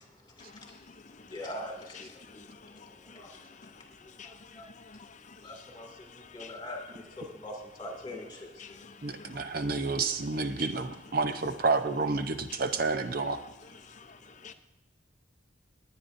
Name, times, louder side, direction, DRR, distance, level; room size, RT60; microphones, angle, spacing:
voice 1, 0.4-1.4 2.0-6.5 8.6-9.6 10.6-10.7 12.5-12.6 13.8-14.5, left 5 dB, 40° left, 0.6 m, -51 dB
voice 2, 1.3-1.7 5.4-5.9 6.3-7.5 7.8-8.2, left 1 dB, 25° left, 2.3 m, -40 dB
voice 3, 9.0-13.4, right 4 dB, 50° right, 0.7 m, -30 dB
20.0 x 9.5 x 2.6 m
head